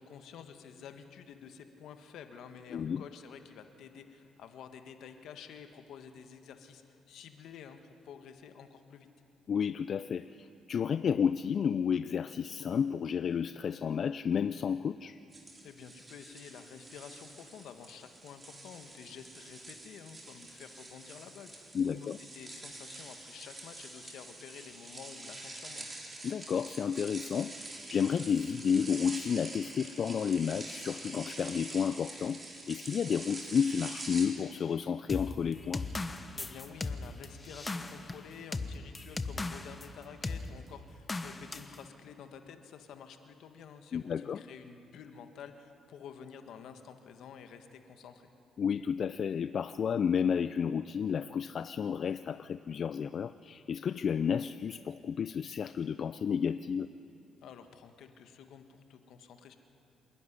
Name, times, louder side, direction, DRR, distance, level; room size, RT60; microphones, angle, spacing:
voice 1, 0.0-9.1 15.6-25.9 36.3-48.3 57.4-59.6, left 7 dB, 80° left, 7 dB, 1.5 m, -50 dB
voice 2, 2.7-3.0 9.5-15.2 21.7-22.2 26.2-35.9 43.9-44.4 48.6-56.9, left 7 dB, 55° left, 12 dB, 0.4 m, -31 dB
sound 1, 15.3-34.3, right 2 dB, 30° right, 3.9 m, -46 dB
sound 2, 35.1-39.9 40.2-40.5 41.1-41.8, left 3 dB, 25° left, 1.0 m, -37 dB
26.5 x 11.5 x 10.0 m, 2.7 s
cardioid pair, 90°, 0 cm